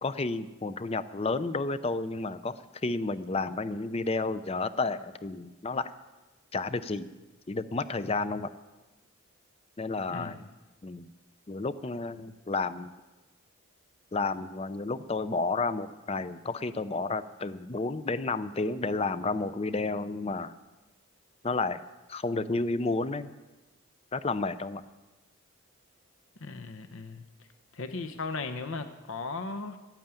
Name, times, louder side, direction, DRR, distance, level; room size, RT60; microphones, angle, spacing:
voice 1, 0.0-5.9 6.5-7.1 7.5-8.5 9.8-10.4 10.8-11.1 11.5-12.9 14.1-20.5 21.4-21.8 22.1-23.3 24.1-24.8, left 3 dB, 25° left, 14 dB, 0.5 m, -31 dB
voice 2, 10.1-10.5 26.4-27.2 27.7-29.8, left 3 dB, 65° left, 9 dB, 0.8 m, -37 dB
12.5 x 9.1 x 9.0 m, 1.2 s
head